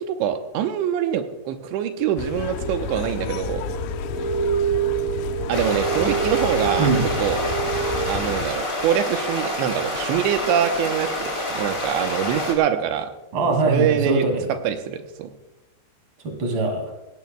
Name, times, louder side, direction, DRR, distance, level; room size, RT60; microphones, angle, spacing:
voice 1, 0.0-3.6 5.5-6.9 7.2-7.4 8.1-13.1 13.6-14.3 14.6-15.3, right 9 dB, 85° right, 6 dB, 3.1 m, -24 dB
sound 1, 2.2-8.5, left 8 dB, 80° left, 2.9 m, -31 dB
sound 2, 2.5-8.1, right 8 dB, 65° left, 6.7 m, -27 dB
sound 3, 5.5-12.5, left 1 dB, 15° left, 2.2 m, -28 dB
voice 2, 13.3-14.5 16.2-16.9, right 3 dB, 30° right, 3 dB, 2.7 m, -22 dB
19.5 x 16.5 x 2.3 m, 0.99 s
omnidirectional pair, 5.1 m